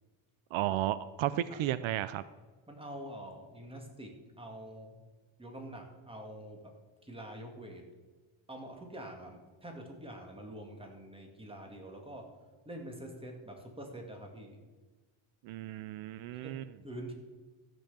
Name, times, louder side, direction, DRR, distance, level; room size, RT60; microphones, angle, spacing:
voice 1, 0.5-2.2 15.4-16.6, right 13 dB, 75° right, 15 dB, 0.6 m, -33 dB
voice 2, 2.7-5.0 5.4-6.7 7.0-7.8 8.5-12.3 12.7-14.6 16.4-17.1, right 1 dB, 10° right, 2 dB, 2.1 m, -46 dB
14.0 x 6.3 x 6.9 m, 1.3 s
cardioid pair, 125°, 49 cm